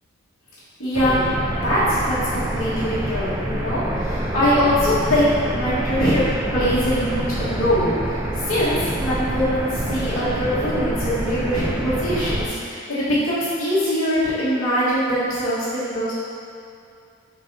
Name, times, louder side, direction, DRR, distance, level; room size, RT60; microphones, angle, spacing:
voice 1, 0.8-1.3 1.6-6.2 6.5-16.1, equal, 75° left, -13 dB, 1.5 m, -22 dB
sound 1, 0.9-12.5, right 1 dB, 15° right, 0.4 m, -26 dB
5.3 x 4.6 x 3.9 m, 2.5 s
head